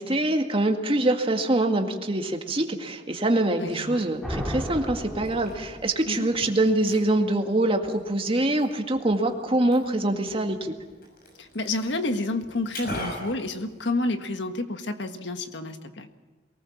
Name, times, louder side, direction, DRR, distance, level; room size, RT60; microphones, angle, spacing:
voice 1, 0.0-10.7, right 1 dB, 30° right, 4 dB, 1.9 m, -24 dB
Liquid, 3.4-14.4, left 1 dB, 55° left, 6.8 m, -43 dB
voice 2, 3.6-4.1 6.1-6.3 11.4-16.1, left 2 dB, 90° left, 8 dB, 1.6 m, -30 dB
sound 1, 4.2-6.2, equal, ahead, 2.4 m, -34 dB
23.0 x 19.0 x 7.3 m, 1.3 s
head